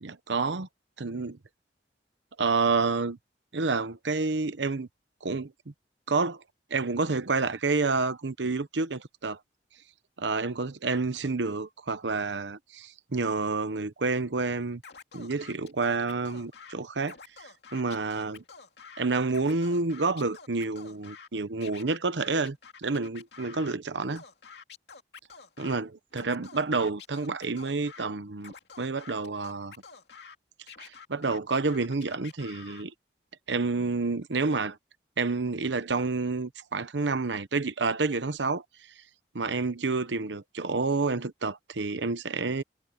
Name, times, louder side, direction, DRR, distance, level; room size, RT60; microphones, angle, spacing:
voice 1, 0.0-0.7 1.0-1.4 2.4-3.2 3.5-4.9 5.2-5.5 6.1-6.4 6.7-9.4 10.2-14.8 15.1-18.4 19.0-24.2 25.6-29.7 30.8-32.9 33.5-34.8 35.2-38.6 39.3-42.6, right 3 dB, 85° right, 0.9 m, -29 dB
Scratching (performance technique), 14.8-16.7 17.0-19.0 19.3-21.3 21.6-23.8 24.2-25.8 26.1-28.1 28.4-30.4 30.7-32.8, left 6 dB, 70° left, 2.5 m, -48 dB
head